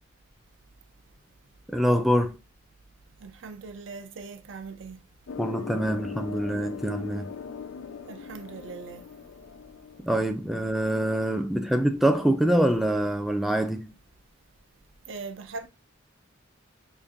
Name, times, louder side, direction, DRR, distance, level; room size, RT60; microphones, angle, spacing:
voice 1, 1.7-2.4 5.4-7.3 10.0-13.9, right 1 dB, ahead, 0.3 m, -25 dB
voice 2, 3.2-5.0 8.1-9.1 15.1-15.7, right 4 dB, 75° right, 0.5 m, -40 dB
sound 1, 5.3-10.3, left 6 dB, 90° left, 0.4 m, -40 dB
5.1 x 2.5 x 2.5 m
head